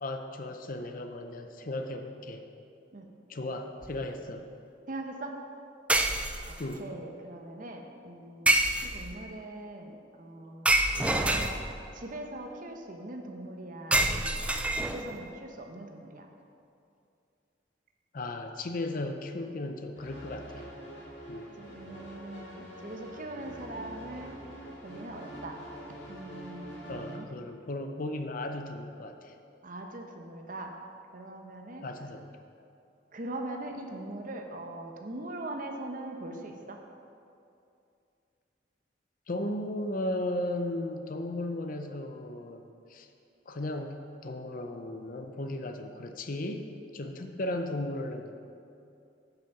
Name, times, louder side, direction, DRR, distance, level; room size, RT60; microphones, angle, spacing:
voice 1, 0.0-2.5 3.3-4.5 6.6-6.9 18.1-20.7 21.3-21.5 26.9-29.3 31.8-32.3 39.3-42.6 42.9-43.1 43.5-46.7 46.9-48.4, left 1 dB, 50° left, 6 dB, 0.6 m, -36 dB
sound 1, 3.8-4.0 5.9-6.7 8.5-9.2 10.7-11.9 13.9-15.2, right 1 dB, 5° right, 0.3 m, -27 dB
voice 2, 4.9-5.4 6.4-8.5 8.8-10.7 10.9-11.6 11.9-14.4 14.8-16.3 21.6-24.3 24.8-25.6 26.1-27.3 29.6-30.7 31.1-31.8 33.1-36.8, right 1 dB, 45° right, 3 dB, 0.8 m, -41 dB
sound 2, 19.9-27.2, equal, 80° left, 2.3 m, -45 dB
9.0 x 5.7 x 5.8 m, 2.6 s
head